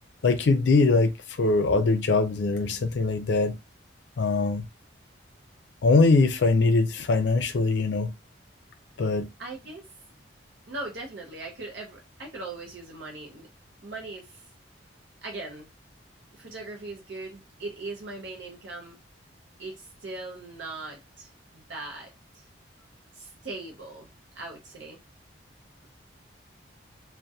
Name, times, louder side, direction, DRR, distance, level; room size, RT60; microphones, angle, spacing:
voice 1, 0.2-3.5 4.2-4.6 5.8-8.1 9.0-9.3, left 3 dB, 70° left, 0.4 m, -22 dB
voice 2, 9.4-9.9 10.7-13.5 13.8-14.4 15.2-15.7 16.3-19.0 19.6-22.4 23.1-24.1 24.3-25.0, right 2 dB, 70° right, 0.6 m, -39 dB
2.7 x 2.1 x 2.2 m
head